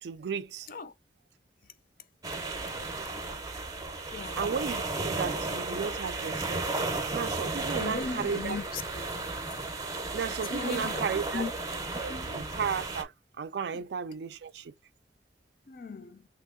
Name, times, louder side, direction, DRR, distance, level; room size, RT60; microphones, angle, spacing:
voice 1, 0.0-0.7 4.4-6.7 7.1-8.6 10.1-11.4 12.0-13.1 13.4-14.7, right 6 dB, 75° right, 0.4 m, -34 dB
sound 1, 2.2-13.0, right 3 dB, 20° right, 0.6 m, -34 dB
voice 2, 4.1-4.4 7.8-9.0 9.4-9.6 10.5-11.0 11.3-11.5 12.1-12.5 13.7-13.8 15.7-16.2, left 4 dB, 50° left, 0.4 m, -37 dB
2.9 x 2.7 x 3.6 m
head